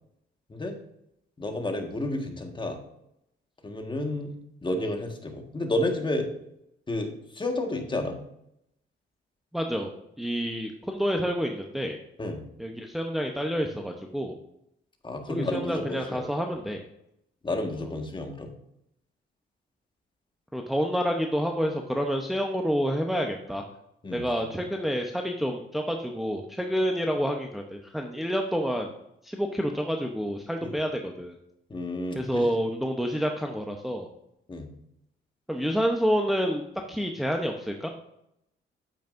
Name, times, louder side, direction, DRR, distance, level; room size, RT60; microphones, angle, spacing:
voice 1, 1.4-2.8 3.6-4.4 4.6-6.3 6.9-8.1 12.2-12.4 15.0-16.3 17.4-18.5 24.0-24.3 30.6-30.8 31.7-32.5 34.5-34.7, left 1 dB, 25° left, 4 dB, 1.6 m, -31 dB
voice 2, 9.5-9.9 10.2-12.0 12.6-14.3 15.3-16.8 20.5-23.6 24.1-28.9 29.2-31.3 32.2-34.1 35.5-36.6 36.9-37.9, equal, ahead, 2 dB, 0.8 m, -28 dB
9.1 x 8.5 x 2.6 m, 0.80 s
cardioid pair, 90°, 20 cm